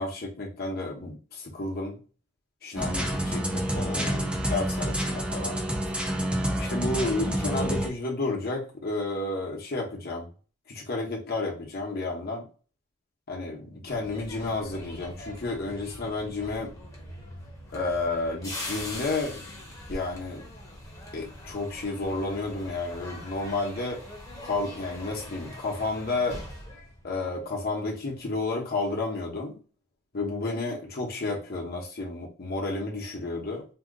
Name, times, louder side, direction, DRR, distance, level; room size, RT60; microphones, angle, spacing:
voice 1, 0.0-2.0 2.6-5.6 6.5-10.3 10.7-12.4 13.3-16.7 17.7-19.4 19.9-20.4 21.1-24.0 24.4-26.4 27.0-29.6 30.1-33.7, left 2 dB, 50° left, -1 dB, 1.0 m, -31 dB
sound 1, 2.8-7.9, right 1 dB, 5° right, 0.5 m, -28 dB
sound 2, 13.9-27.9 28.2-28.5, left 1 dB, 15° left, 0.9 m, -42 dB
2.8 x 2.4 x 3.7 m, 0.37 s
head